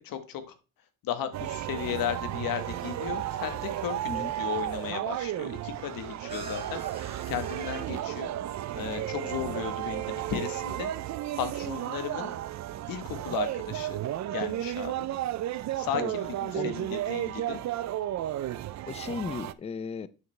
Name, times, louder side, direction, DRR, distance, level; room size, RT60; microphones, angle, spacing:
voice 1, 0.0-0.6 1.0-4.1 4.4-6.8 7.3-8.3 8.7-10.9 11.3-12.4 12.9-14.0 14.3-15.1 15.7-17.6, left 9 dB, 75° left, 1.3 m, -35 dB
sound 1, 1.3-19.5, right 13 dB, 55° right, 0.5 m, -33 dB
sound 2, 2.0-8.2, right 3 dB, 15° right, 1.9 m, -50 dB
voice 2, 18.9-20.1, left 5 dB, 20° left, 0.4 m, -35 dB
9.3 x 6.3 x 3.2 m
cardioid pair, 120°, 34 cm